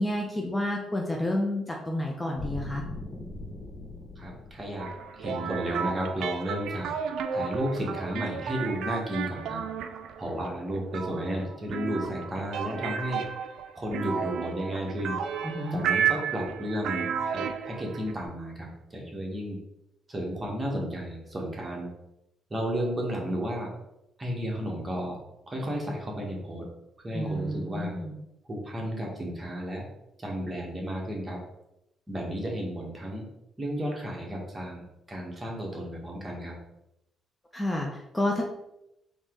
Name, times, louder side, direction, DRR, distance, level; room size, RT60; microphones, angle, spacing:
voice 1, 0.0-2.8 15.4-15.8 27.1-28.2 37.5-38.4, left 1 dB, 15° left, 0 dB, 0.6 m, -30 dB
sound 1, 2.4-5.6, left 2 dB, 40° left, 1.2 m, -40 dB
voice 2, 4.2-4.9 5.1-6.9 7.3-9.6 10.2-13.2 13.7-15.2 15.7-19.6 20.1-21.9 22.5-23.7 24.2-25.2 25.5-26.6 27.0-27.9 28.5-29.9 30.2-31.4 32.1-33.3 33.6-36.6, equal, 25° right, -2 dB, 1.4 m, -33 dB
sound 2, 4.8-18.3, right 7 dB, 80° right, 0.4 m, -33 dB
4.1 x 3.0 x 3.8 m, 0.87 s
cardioid pair, 90°, 0 cm